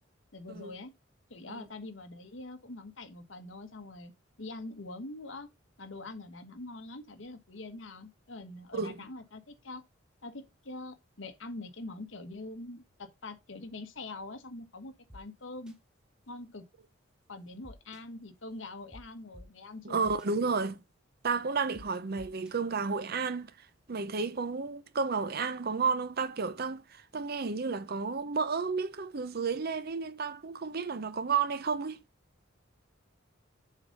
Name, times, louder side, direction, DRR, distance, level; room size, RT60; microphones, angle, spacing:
voice 1, 0.3-0.9 1.3-4.1 4.4-5.5 5.8-9.8 10.2-15.8 16.3-16.6 17.3-20.1, left 2 dB, 75° left, 1.4 m, -44 dB
sound 1, 15.1-15.2 15.7-15.8 17.6-18.0 18.9-19.0 19.3-19.4 20.0-20.3 21.7-21.8 22.2-22.5, left 1 dB, 5° right, 1.1 m, -49 dB
voice 2, 19.9-20.8 21.2-23.5 23.9-32.0, right 5 dB, 50° right, 0.7 m, -32 dB
7.2 x 3.9 x 5.3 m
head